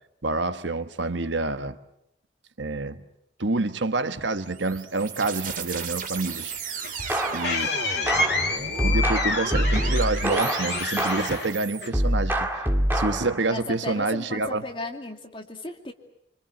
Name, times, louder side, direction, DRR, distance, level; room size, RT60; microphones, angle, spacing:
voice 1, 0.2-1.8 2.6-3.0 3.4-6.5 7.3-7.7 8.8-12.6 12.9-14.6, right 2 dB, 75° right, 1.3 m, -27 dB
sound 1, 4.3-11.9, right 5 dB, 45° right, 2.5 m, -35 dB
sound 2, 6.5-12.3, left 3 dB, 60° left, 3.0 m, -29 dB
sound 3, 7.1-7.6 8.1-11.5 11.9-13.4, equal, 10° right, 2.2 m, -25 dB
voice 2, 13.5-15.9, left 2 dB, 25° left, 2.5 m, -36 dB
26.0 x 26.0 x 7.8 m
head